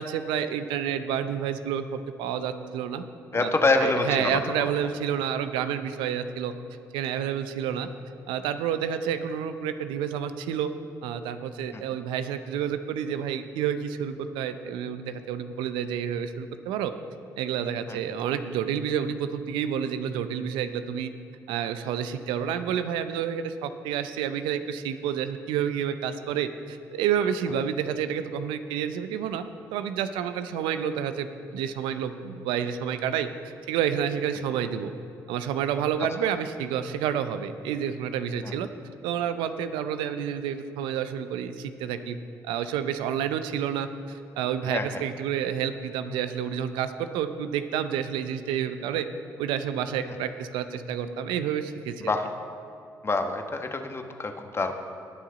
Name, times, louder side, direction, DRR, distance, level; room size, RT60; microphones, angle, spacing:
voice 1, 0.0-3.0 3.3-3.5 3.8-6.5 6.9-7.9 8.3-10.7 11.0-16.9 17.4-21.1 21.5-29.5 29.7-33.3 33.7-34.9 35.3-38.7 39.0-42.2 42.4-49.1 49.4-51.9, right 8 dB, 80° right, 10 dB, 0.5 m, -29 dB
voice 2, 3.3-4.4 11.7-11.8 17.9-18.0 38.4-38.5 44.7-45.0 52.0-52.3 53.0-54.7, left 3 dB, 30° left, 5 dB, 1.2 m, -26 dB
18.5 x 6.3 x 4.0 m, 2.6 s
hypercardioid pair, 50°, 8 cm